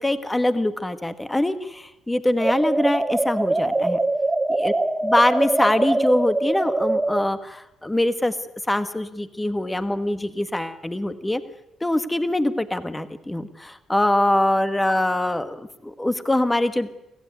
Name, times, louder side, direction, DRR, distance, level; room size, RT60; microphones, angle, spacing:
voice 1, 0.0-4.0 4.5-4.7 5.0-8.3 8.7-11.4 11.8-16.9, left 1 dB, 10° left, 10 dB, 1.5 m, -23 dB
sound 1, 2.4-7.3, right 2 dB, 15° right, 1.7 m, -23 dB
25.5 x 15.5 x 9.5 m, 0.91 s
cardioid pair, 90°, 0 cm